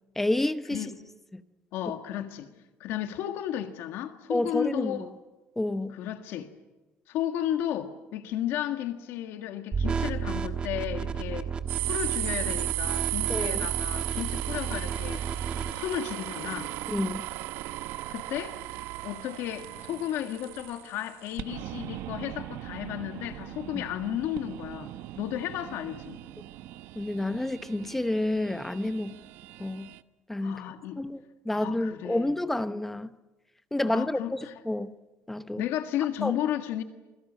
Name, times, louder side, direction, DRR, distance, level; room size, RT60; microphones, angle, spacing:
voice 1, 0.2-0.9 1.3-1.4 4.3-5.1 5.6-6.0 13.3-13.7 16.9-17.2 23.7-23.8 26.9-29.1 29.6-29.9 30.3-30.6 31.0-33.1 33.7-34.4 34.6-34.9 35.3-35.6 36.2-36.4, left 1 dB, 5° left, 0.8 m, -29 dB
voice 2, 1.7-2.5 2.8-5.1 5.9-6.5 7.1-11.5 11.9-15.3 15.7-16.7 18.1-18.6 19.0-24.9 25.2-26.2 30.4-31.0 31.5-32.4 33.8-34.5 35.6-36.8, left 11 dB, 60° left, 1.7 m, -33 dB
sound 1, 9.7-15.7, right 6 dB, 20° right, 1.3 m, -32 dB
sound 2, 11.7-30.0, right 16 dB, 65° right, 1.1 m, -37 dB
28.5 x 22.0 x 7.5 m
cardioid pair, 180°, 5 cm